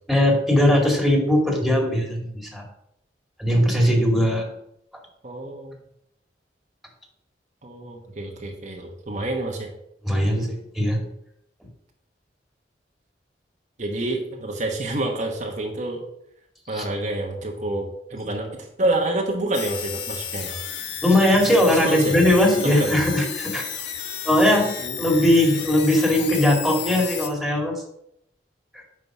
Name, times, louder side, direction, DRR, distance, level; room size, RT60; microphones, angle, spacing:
voice 1, 0.1-2.6 3.4-4.5 10.0-11.0 16.7-16.8 21.0-23.6 24.3-24.7 25.0-27.7, left 1 dB, ahead, 0 dB, 2.1 m, -19 dB
voice 2, 5.2-5.8 7.6-9.7 13.8-16.0 16.7-20.5 21.8-22.2 22.6-23.0 24.8-25.1, right 2 dB, 45° right, 1 dB, 1.2 m, -28 dB
sound 1, 19.5-27.3, left 8 dB, 70° left, 1.2 m, -33 dB
9.4 x 4.9 x 6.0 m, 0.77 s
head